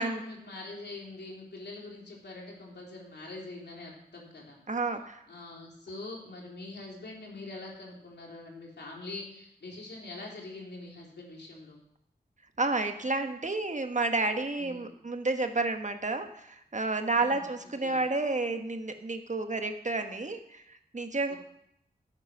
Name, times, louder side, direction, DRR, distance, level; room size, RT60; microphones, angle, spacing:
voice 1, 0.0-4.6 5.3-11.8 14.6-14.9 17.1-17.5 17.8-18.0 21.3-21.4, left 2 dB, 85° left, -2 dB, 3.3 m, -44 dB
voice 2, 4.7-5.2 12.6-21.3, right 3 dB, 45° right, 6 dB, 1.4 m, -30 dB
11.5 x 8.2 x 6.1 m, 0.76 s
cardioid pair, 40°, 17 cm